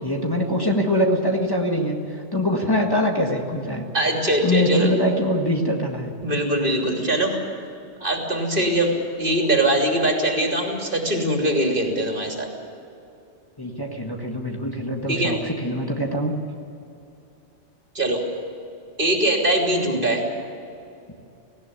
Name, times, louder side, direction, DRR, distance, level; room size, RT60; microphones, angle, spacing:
voice 1, 0.0-3.9 4.4-6.1 13.6-16.3, equal, 20° left, 0 dB, 1.8 m, -23 dB
voice 2, 3.9-4.9 6.2-7.4 8.0-8.9 9.2-12.5 15.1-15.4 17.9-18.2 19.0-20.2, right 1 dB, 50° right, 1 dB, 3.2 m, -22 dB
18.0 x 17.5 x 9.6 m, 2.7 s
omnidirectional pair, 1.2 m